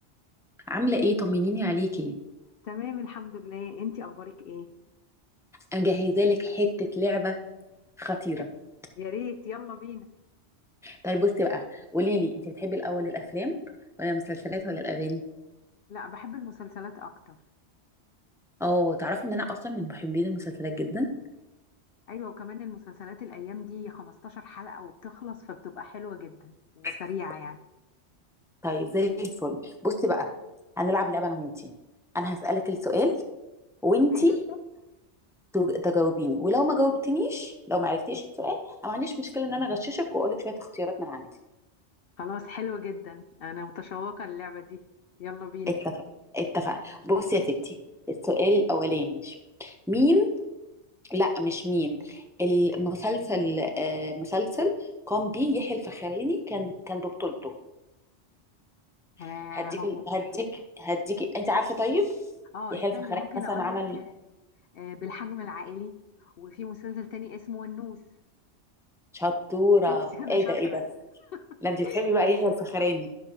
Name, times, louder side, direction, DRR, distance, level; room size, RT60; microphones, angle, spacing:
voice 1, 0.7-2.1 5.7-7.4 8.0-8.5 10.8-13.5 14.0-15.2 18.6-21.1 26.8-26.9 28.6-30.3 30.8-31.7 32.1-33.1 33.8-34.3 35.5-41.3 45.7-45.8 46.3-47.8 48.1-49.3 49.6-50.3 51.1-54.7 55.1-57.5 59.5-60.4 60.8-62.2 62.7-63.2 63.5-64.0 69.1-70.8 71.6-73.1, left 1 dB, 5° right, 4 dB, 0.7 m, -27 dB
voice 2, 2.6-4.7 8.3-8.5 9.0-10.1 15.9-17.4 22.1-27.6 34.1-34.6 42.2-44.8 45.2-45.7 59.2-60.0 62.5-64.1 64.7-65.9 66.2-68.0 69.9-70.8 71.3-71.4 71.8-72.1, left 7 dB, 65° left, 8 dB, 0.7 m, -38 dB
12.0 x 6.6 x 3.0 m, 0.99 s
omnidirectional pair, 1.2 m